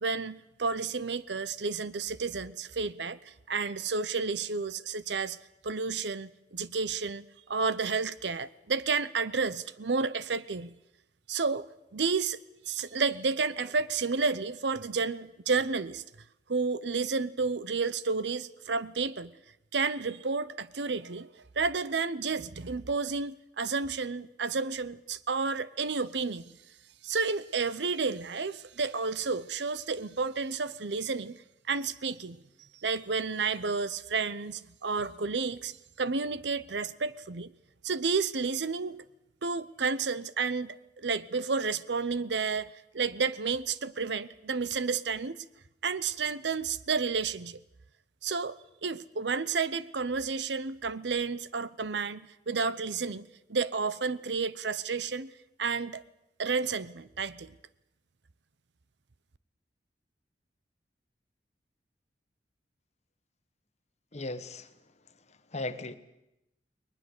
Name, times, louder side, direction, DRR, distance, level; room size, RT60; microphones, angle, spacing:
voice 1, 0.0-5.4 5.6-10.7 11.3-11.7 11.9-12.4 12.7-16.0 16.5-19.3 19.7-21.3 21.6-26.5 27.0-31.4 31.7-32.4 32.8-37.5 37.8-39.0 39.4-45.4 45.8-47.6 48.2-52.2 52.5-55.3 55.6-56.0 56.4-57.5, right 4 dB, 75° right, 17 dB, 0.8 m, -31 dB
voice 2, 64.1-64.7 65.3-66.0, left 2 dB, 40° left, 11 dB, 1.3 m, -37 dB
20.5 x 20.0 x 8.2 m, 0.89 s
head